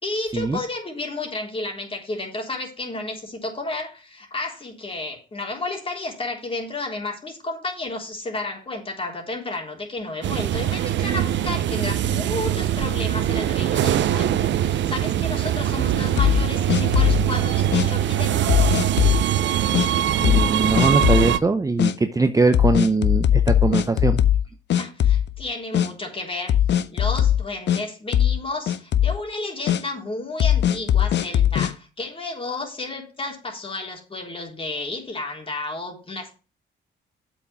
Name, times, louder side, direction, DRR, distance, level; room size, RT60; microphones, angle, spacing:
voice 1, 0.0-18.7 24.7-26.6 26.9-36.4, left 2 dB, 25° left, 2 dB, 3.7 m, -32 dB
sound 1, 10.2-21.4, right 11 dB, 65° right, 0.7 m, -22 dB
sound 2, 16.2-17.3 17.7-17.9 18.5-19.2 19.7-19.9 20.2-20.5 20.8-21.3 21.8-21.9 22.5-24.4 24.7-25.4 25.7-25.9 26.5-27.8 28.1-28.4 28.7-29.2 29.7-29.8 30.4-31.7, left 10 dB, 65° left, 0.8 m, -19 dB
voice 2, 20.2-24.2, right 3 dB, 15° right, 8 dB, 0.7 m, -21 dB
7.8 x 6.3 x 5.9 m, 0.34 s
cardioid pair, 90°, 20 cm